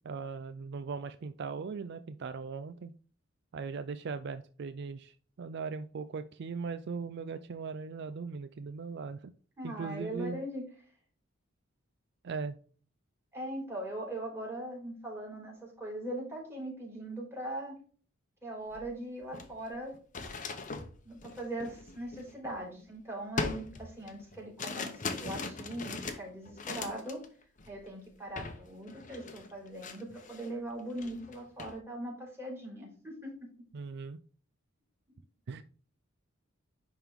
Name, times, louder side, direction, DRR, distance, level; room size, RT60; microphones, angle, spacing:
voice 1, 0.0-2.9 3.5-9.3 9.6-10.4 12.2-12.6 33.7-34.2 35.5-35.6, right 5 dB, 55° right, 11 dB, 0.4 m, -39 dB
voice 2, 9.6-10.6 13.3-17.8 18.4-20.0 21.0-27.2 27.7-33.5, right 1 dB, 10° right, -3 dB, 3.6 m, -40 dB
sound 1, 18.7-18.8 19.2-22.8 23.4-27.3 27.6-27.9 28.4-28.6 28.9-30.5 30.9-31.8, left 4 dB, 40° left, 0.9 m, -40 dB
10.5 x 3.7 x 3.5 m, 0.43 s
head